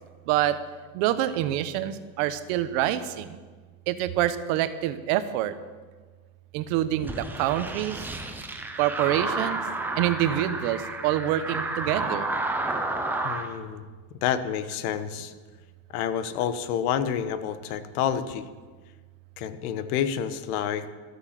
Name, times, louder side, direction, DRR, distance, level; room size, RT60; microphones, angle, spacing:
voice 1, 0.3-0.6 0.9-3.4 3.9-5.6 6.5-8.0 8.8-9.6 10.0-12.3, right 13 dB, 60° right, 12 dB, 1.0 m, -26 dB
sound 1, 7.0-13.5, right 2 dB, 5° right, 0.6 m, -31 dB
voice 2, 13.2-13.9 14.2-15.3 15.9-18.5 19.4-20.9, left 9 dB, 80° left, 12 dB, 1.2 m, -29 dB
13.0 x 8.6 x 7.5 m, 1.4 s
cardioid pair, 170°, 44 cm